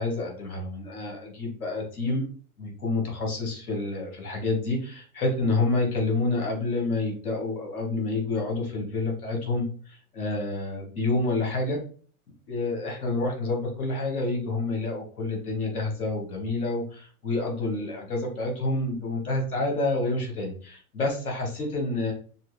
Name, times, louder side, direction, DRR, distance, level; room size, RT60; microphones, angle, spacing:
voice 1, 0.0-2.2 2.6-11.8 12.5-22.1, left 2 dB, 70° left, 1 dB, 1.7 m, -28 dB
6.0 x 2.4 x 3.2 m, 0.42 s
figure-of-eight pair, 90°, 45 cm